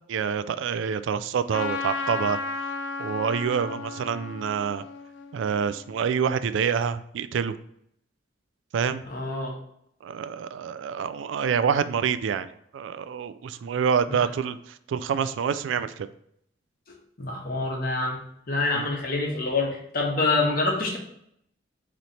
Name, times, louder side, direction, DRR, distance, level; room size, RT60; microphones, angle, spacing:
voice 1, 0.1-2.4 3.0-4.8 5.3-7.6 8.7-9.0 10.0-16.1 18.7-18.8, right 7 dB, 80° right, 12 dB, 0.3 m, -27 dB
Trumpet, 1.5-6.2, left 4 dB, 75° left, 0.4 m, -34 dB
voice 2, 9.1-9.5 14.1-14.2 17.2-18.2 18.5-21.0, left 3 dB, 50° left, -1 dB, 1.1 m, -26 dB
4.2 x 3.1 x 4.0 m, 0.71 s
head